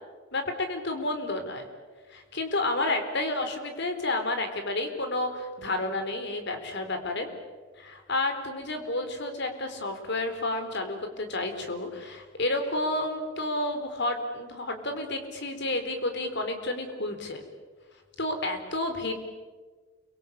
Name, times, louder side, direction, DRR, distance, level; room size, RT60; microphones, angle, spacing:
voice 1, 0.3-1.7 2.1-7.3 7.8-17.4 18.2-19.2, left 2 dB, 60° left, 7 dB, 4.2 m, -30 dB
29.5 x 24.0 x 8.4 m, 1.4 s
head